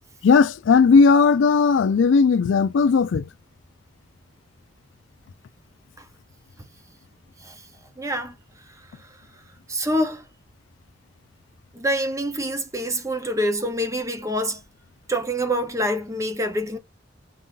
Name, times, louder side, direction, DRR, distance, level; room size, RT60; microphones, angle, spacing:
voice 1, 0.2-3.3, left 5 dB, 80° left, 0.4 m, -16 dB
voice 2, 8.0-8.3 9.7-10.2 11.7-14.6 15.1-16.8, equal, 15° right, 0.8 m, -26 dB
4.6 x 2.7 x 3.7 m
head